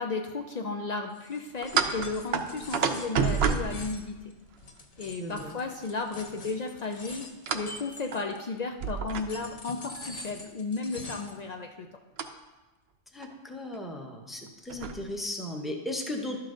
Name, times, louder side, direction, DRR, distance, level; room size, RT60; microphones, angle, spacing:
voice 1, 0.0-4.1 5.0-7.3 7.5-11.9, left 4 dB, 90° left, 3 dB, 0.3 m, -34 dB
sound 1, 1.1-8.6 9.1-11.4, left 2 dB, 35° left, 0.7 m, -45 dB
sound 2, 1.6-4.6 7.5-7.7 8.1-8.2 8.8-9.6 12.2-12.3 13.2-13.3 13.6-13.8 14.5-15.0, right 6 dB, 60° right, 0.7 m, -29 dB
voice 2, 5.2-5.5 13.1-16.4, left 1 dB, ahead, 2 dB, 0.6 m, -36 dB
12.0 x 5.7 x 3.8 m, 1.2 s
omnidirectional pair, 1.4 m